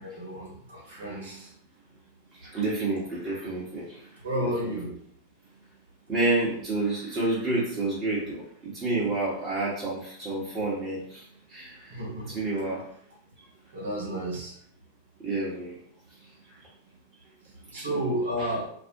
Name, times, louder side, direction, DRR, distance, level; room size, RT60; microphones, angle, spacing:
voice 1, 0.0-1.5 4.2-4.9 11.9-12.4 13.7-14.5 17.7-18.7, right 1 dB, 65° right, -3 dB, 0.9 m, -31 dB
voice 2, 0.9-1.3 2.4-4.0 4.6-4.7 6.1-11.2 11.5-11.9 12.3-12.8 15.2-15.8 17.7-18.0 18.4-18.5, right 2 dB, 20° right, -8 dB, 0.8 m, -29 dB
2.4 x 2.0 x 2.6 m, 0.64 s
figure-of-eight pair, 90°, 0 cm